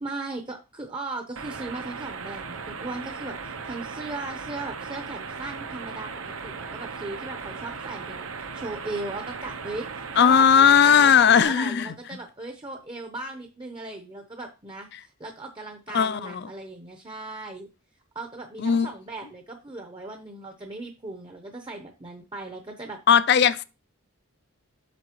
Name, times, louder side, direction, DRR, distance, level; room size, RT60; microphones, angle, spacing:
voice 1, 0.0-6.1 6.4-17.7 18.1-23.0, right 2 dB, 20° right, 0.8 m, -37 dB
sound 1, 1.4-11.4, right 5 dB, 70° right, 0.9 m, -37 dB
voice 2, 10.2-11.9 15.9-16.4 18.6-18.9 23.1-23.6, left 7 dB, 50° left, 0.4 m, -18 dB
8.3 x 6.5 x 3.0 m
head